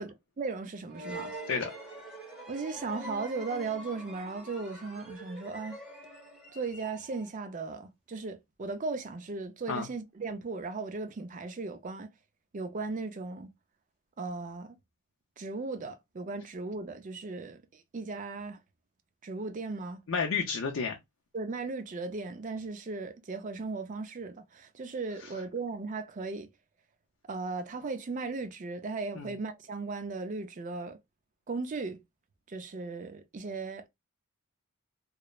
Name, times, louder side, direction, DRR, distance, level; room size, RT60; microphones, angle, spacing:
voice 1, 0.0-1.3 2.5-5.8 6.5-12.1 12.5-13.5 14.2-14.8 15.4-18.6 19.2-20.0 21.3-26.5 27.3-31.0 31.5-32.0 32.5-33.8, right 3 dB, 35° right, 0.4 m, -37 dB
sound 1, 0.9-7.4, right 1 dB, 5° right, 0.9 m, -45 dB
voice 2, 20.1-21.0 29.1-29.3, left 5 dB, 60° left, 0.5 m, -30 dB
3.0 x 2.0 x 2.2 m
head